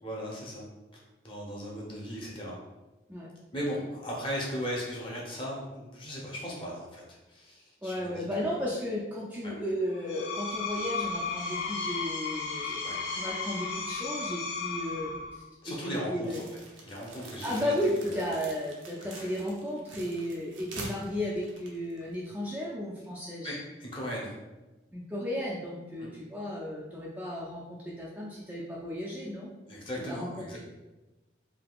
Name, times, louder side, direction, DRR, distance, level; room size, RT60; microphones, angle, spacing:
voice 1, 0.0-0.6 1.2-2.6 3.5-7.0 7.3-8.5 9.4-9.5 12.6-13.1 15.6-16.4 16.8-17.7 18.0-18.2 19.2-19.3 23.4-24.3 26.0-26.1 29.7-30.6, equal, 25° left, -3 dB, 0.7 m, -37 dB
voice 2, 7.8-16.4 17.4-23.5 24.9-29.5 30.0-30.6, equal, 10° right, -6 dB, 0.3 m, -34 dB
Screech, 9.9-15.4, left 4 dB, 90° left, 0.6 m, -34 dB
sound 1, 16.2-22.3, right 2 dB, 85° right, 0.6 m, -46 dB
3.4 x 2.7 x 2.3 m, 1.1 s
head